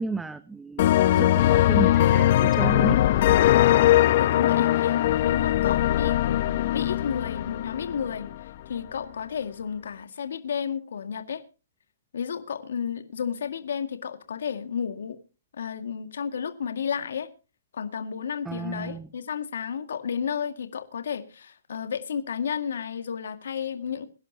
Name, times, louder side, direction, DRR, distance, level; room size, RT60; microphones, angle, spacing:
voice 1, 0.0-3.4 18.5-19.1, right 4 dB, 5° right, 0.8 m, -33 dB
sound 1, 0.8-8.4, left 13 dB, 50° left, 0.8 m, -21 dB
voice 2, 3.9-11.4 12.1-15.2 15.5-17.3 17.7-24.1, left 7 dB, 70° left, 2.0 m, -32 dB
23.0 x 11.0 x 2.9 m
hypercardioid pair, 140°, 0 cm